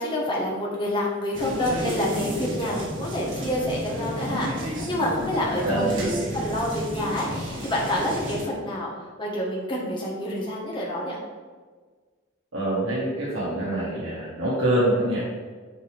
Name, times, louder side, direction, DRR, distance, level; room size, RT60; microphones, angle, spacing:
voice 1, 0.0-5.9 6.3-11.2, left 1 dB, 25° left, -4 dB, 1.3 m, -28 dB
sound 1, 1.3-8.4, equal, 70° right, 1.9 m, -31 dB
voice 2, 5.6-6.1 12.5-15.2, right 1 dB, 90° right, -7 dB, 1.5 m, -25 dB
6.6 x 5.1 x 3.4 m, 1.5 s
head